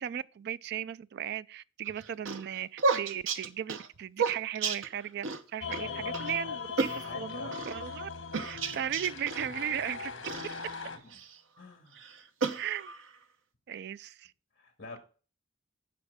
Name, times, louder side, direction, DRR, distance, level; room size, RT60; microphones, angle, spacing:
voice 1, 0.0-5.3 5.5-8.1 8.4-10.1 12.6-12.9 13.7-14.3, right 9 dB, 55° right, 0.3 m, -36 dB
sound 1, 1.9-5.4 5.7-5.8 6.1-6.3 6.8-7.8 8.3-9.5 10.2-11.4 11.9-13.1, right 4 dB, 80° right, 0.8 m, -33 dB
sound 2, 5.6-11.0, left 6 dB, 80° left, 1.2 m, -39 dB
voice 2, 5.7-6.6 7.0-7.7 10.9-11.2 11.6-12.0 14.6-15.0, left 2 dB, 55° left, 1.9 m, -47 dB
13.5 x 5.1 x 3.5 m
head